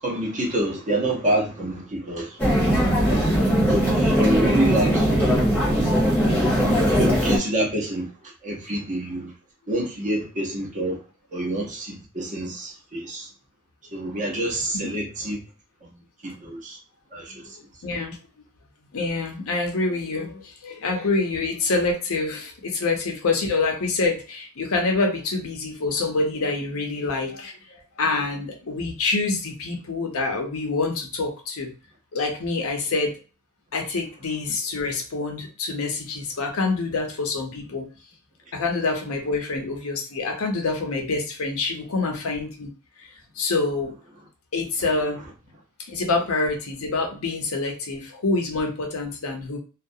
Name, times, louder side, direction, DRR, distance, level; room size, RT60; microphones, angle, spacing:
voice 1, 0.0-2.4 3.7-5.5 6.7-9.3 9.7-11.0 11.3-13.3 13.9-15.4 16.2-16.8 17.1-17.6, right 1 dB, 35° right, 0.8 m, -27 dB
sound 1, 2.4-7.4, equal, 10° left, 0.8 m, -20 dB
voice 2, 17.8-18.2 18.9-31.7 32.1-33.1 33.7-37.9 38.5-42.7 43.4-44.0 44.5-45.2 45.9-49.6, left 3 dB, 70° left, 0.6 m, -26 dB
2.3 x 2.0 x 2.6 m
head